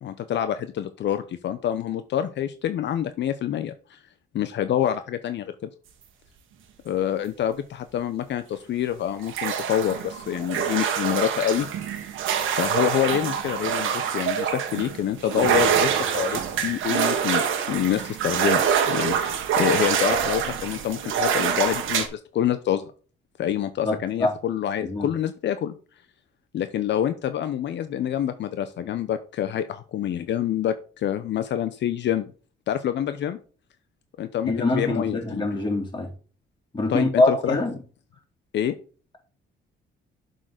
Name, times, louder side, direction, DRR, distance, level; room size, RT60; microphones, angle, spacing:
voice 1, 0.0-4.0 4.3-5.5 6.8-11.9 12.5-17.4 17.7-18.6 18.9-22.8 23.4-25.7 26.5-32.3 32.7-33.4 34.2-35.5 36.9-37.6 38.5-38.7, left 10 dB, 65° left, 10 dB, 0.7 m, -27 dB
sound 1, 9.2-22.1, right 7 dB, 85° right, 1.3 m, -25 dB
voice 2, 23.8-24.3 24.8-25.1 34.4-36.1 36.7-37.8, left 2 dB, 25° left, -1 dB, 3.0 m, -24 dB
7.6 x 3.9 x 6.5 m, 0.39 s
cardioid pair, 90°, 20 cm